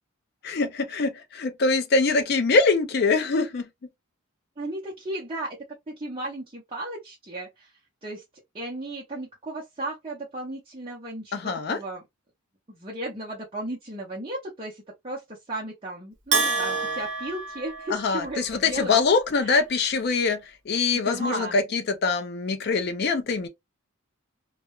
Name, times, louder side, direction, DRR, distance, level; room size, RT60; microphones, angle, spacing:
voice 1, 0.4-3.7 11.3-11.8 17.9-23.5, left 4 dB, 50° left, 0.4 m, -24 dB
voice 2, 4.6-5.6 5.9-7.7 8.0-8.2 8.5-12.0 12.7-19.0 19.4-19.6 20.9-21.6, right 1 dB, 25° right, 0.6 m, -35 dB
Bell, 16.3-18.5, right 4 dB, 55° right, 0.8 m, -28 dB
2.3 x 2.0 x 2.9 m
head